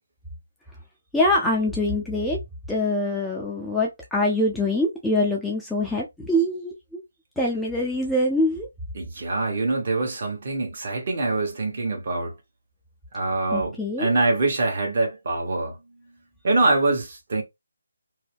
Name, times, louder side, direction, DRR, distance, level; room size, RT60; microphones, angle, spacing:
voice 1, 1.1-2.4 2.7-7.0 7.4-8.7 13.5-14.1, left 1 dB, ahead, 0.4 m, -24 dB
voice 2, 8.9-12.3 13.1-15.8 16.4-17.4, right 2 dB, 45° right, 1.2 m, -24 dB
2.7 x 2.1 x 3.3 m
figure-of-eight pair, 160°, 0 cm